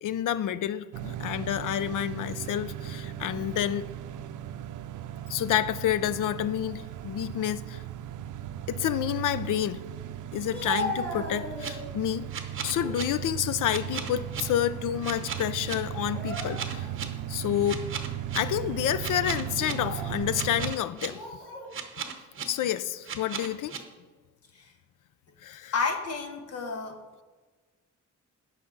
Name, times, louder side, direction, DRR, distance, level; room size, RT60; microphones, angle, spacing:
voice 1, 0.0-3.9 5.3-7.8 8.7-9.8 10.3-12.3 12.6-16.9 17.3-17.9 18.3-21.2 22.5-23.8 25.4-25.7, left 11 dB, 80° left, 0.5 m, -29 dB
sound 1, 0.9-20.7, right 11 dB, 75° right, 0.5 m, -37 dB
Speech, 10.3-12.0 12.5-13.0 13.5-14.7 15.0-15.2 16.0-17.0 17.5-17.6 18.4-18.7 19.5-20.2 21.0-21.7, equal, 5° left, 2.6 m, -37 dB
sound 2, 11.4-11.7 12.3-13.0 13.7-14.4 15.0-15.8 16.3-17.0 17.7-18.4 19.0-19.7 20.3-21.1 21.7-22.4 23.1-23.8, right 7 dB, 40° right, 1.0 m, -35 dB
voice 2, 25.7-27.0, left 4 dB, 55° left, 1.3 m, -31 dB
16.0 x 5.8 x 3.9 m
wide cardioid pair, 165°, 31 cm